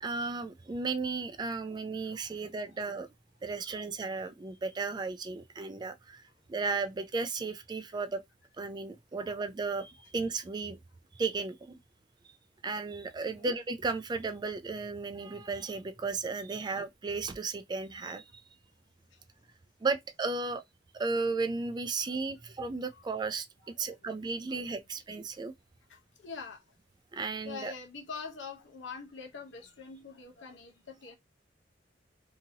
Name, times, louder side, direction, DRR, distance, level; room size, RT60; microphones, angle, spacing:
voice 1, 0.0-3.1 3.4-6.2 6.5-8.2 8.6-10.8 11.2-11.8 12.6-18.4 19.8-20.6 20.9-25.5 27.1-27.7, right 4 dB, 25° right, 0.3 m, -34 dB
voice 2, 2.0-2.4 9.2-9.4 13.2-13.5 19.1-19.2 23.8-24.0 24.5-24.6 25.9-26.6 27.4-31.2, left 5 dB, 90° left, 0.9 m, -45 dB
2.8 x 2.7 x 2.7 m
head